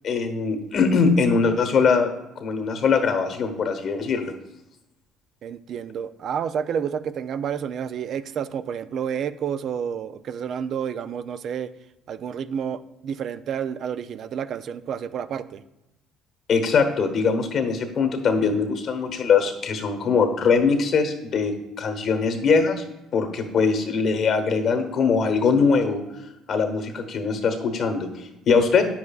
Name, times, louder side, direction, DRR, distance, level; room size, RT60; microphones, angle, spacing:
voice 1, 0.0-4.3 16.5-22.8 23.1-26.0 26.5-28.8, left 5 dB, 55° left, 8 dB, 1.1 m, -22 dB
voice 2, 5.4-11.7 12.1-15.6, right 8 dB, 60° right, 12 dB, 0.4 m, -30 dB
9.6 x 7.2 x 2.4 m, 0.95 s
hypercardioid pair, 65°, 0 cm